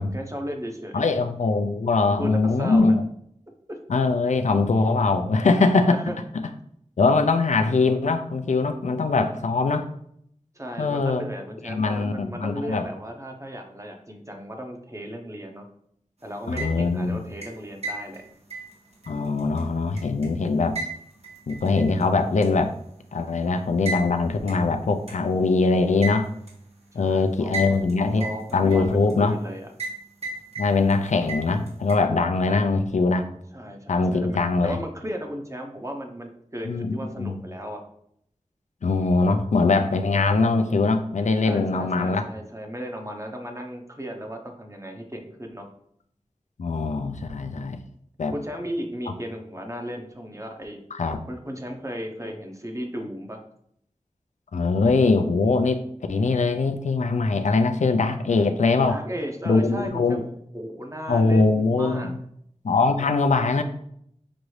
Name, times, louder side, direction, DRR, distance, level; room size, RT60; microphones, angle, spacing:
voice 1, 0.0-1.0 2.2-2.3 2.6-2.9 3.7-3.8 5.8-6.2 10.5-15.7 16.2-18.3 26.9-27.8 28.2-29.7 33.5-37.8 41.4-45.7 48.3-50.8 51.3-53.4 58.9-62.1, equal, 25° right, 3 dB, 0.8 m, -35 dB
voice 2, 0.9-3.0 3.9-6.0 7.0-9.8 10.8-11.2 11.6-12.9 16.5-17.2 19.1-20.8 21.5-22.7 23.1-26.3 26.9-29.4 30.6-33.3 33.9-34.8 36.7-37.4 38.8-42.2 46.6-47.8 48.2-48.3 51.0-51.2 54.5-55.8 56.1-59.0 59.5-60.2 61.1-62.2 62.6-63.6, left 3 dB, 70° left, 7 dB, 0.4 m, -22 dB
sound 1, 16.4-17.0 17.4-20.3 20.8-22.0 22.4-22.5 23.9-24.1 24.5-24.6 25.1-25.2 26.0-26.6 27.5-27.9 28.2-29.1 29.8-30.0 30.2-31.0 31.3-32.0, right 2 dB, 55° right, 1.3 m, -33 dB
6.0 x 2.6 x 3.2 m, 0.69 s
wide cardioid pair, 50°, 13 cm